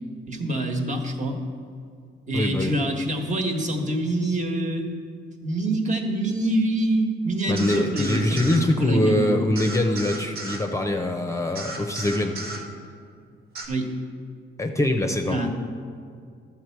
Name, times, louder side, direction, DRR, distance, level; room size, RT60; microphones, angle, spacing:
voice 1, 0.3-1.4 2.3-4.8 5.4-9.3 13.7-13.9 15.3-15.5, right 1 dB, 40° right, 2 dB, 1.5 m, -26 dB
voice 2, 2.3-2.7 7.5-12.4 14.6-15.5, left 1 dB, 15° left, 4 dB, 0.7 m, -23 dB
sound 1, 7.6-8.6 9.5-10.6 11.5-12.6 13.5-13.7, right 2 dB, 85° right, 1.6 m, -34 dB
12.0 x 7.3 x 4.6 m, 2.3 s
cardioid pair, 90°, 20 cm